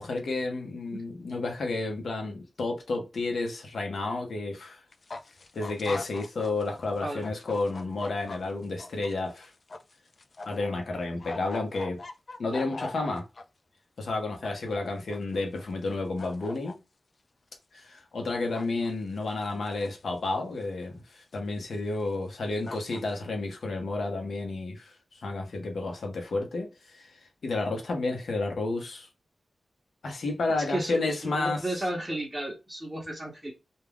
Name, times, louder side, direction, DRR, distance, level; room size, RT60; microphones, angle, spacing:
voice 1, 0.0-4.8 5.5-9.5 10.4-12.0 12.4-13.3 14.0-16.8 17.7-27.1 27.4-29.1 30.0-31.6, left 3 dB, 75° left, 0.8 m, -31 dB
sound 1, 4.9-6.7 7.0-10.7 10.9-13.4 14.1-14.8 15.1-15.9 16.2-16.7 18.5-18.9 19.2-20.1 20.6-20.7 21.7-21.8 22.3-22.4 22.7-23.1, left 3 dB, 55° left, 0.3 m, -41 dB
voice 2, 30.5-33.5, right 1 dB, 15° right, 0.8 m, -33 dB
2.4 x 2.2 x 3.4 m
cardioid pair, 70°, 0 cm